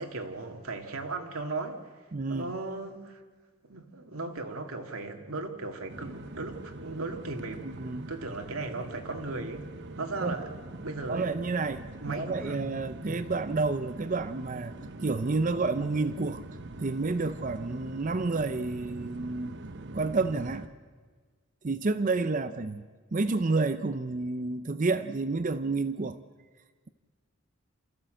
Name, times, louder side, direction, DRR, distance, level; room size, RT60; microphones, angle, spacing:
voice 1, 0.0-1.9 2.3-3.2 3.7-7.7 8.1-9.7 10.0-10.5 10.8-11.4 12.0-12.7 13.0-13.2, right 3 dB, 85° right, 4 dB, 2.1 m, -37 dB
voice 2, 2.1-2.5 7.6-8.1 10.2-10.3 11.1-14.8 15.0-16.4 16.8-19.6 19.9-20.7 21.6-26.2, right 3 dB, 35° right, 12 dB, 0.5 m, -30 dB
sound 1, 5.9-20.7, right 2 dB, 55° right, 1.0 m, -43 dB
28.0 x 14.5 x 7.7 m, 1.5 s
head